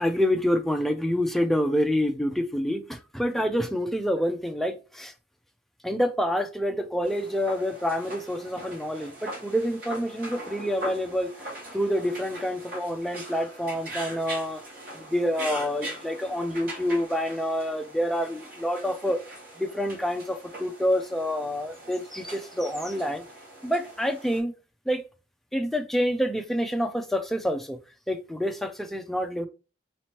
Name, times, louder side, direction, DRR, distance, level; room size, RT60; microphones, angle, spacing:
voice 1, 0.0-5.1 5.8-11.3 11.7-14.6 14.9-19.2 19.6-23.2 23.6-24.5 24.9-25.0 25.5-27.8 28.1-29.5, equal, ahead, 0.4 m, -27 dB
sound 1, 7.0-24.4, right 1 dB, 55° right, 2.0 m, -41 dB
4.1 x 3.0 x 2.9 m
head